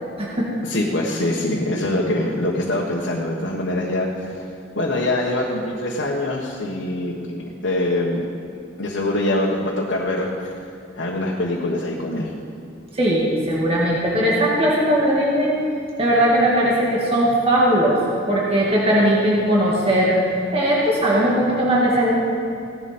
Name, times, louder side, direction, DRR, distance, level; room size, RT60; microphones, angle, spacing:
voice 1, 0.6-4.1 4.3-4.4 4.7-8.2 8.8-10.5 10.9-12.3, left 1 dB, 90° left, -4 dB, 1.5 m, -24 dB
voice 2, 12.9-15.5 16.0-18.0 18.3-20.2 20.5-22.1, right 1 dB, 30° right, -5 dB, 1.9 m, -19 dB
17.0 x 11.0 x 4.4 m, 2.6 s
head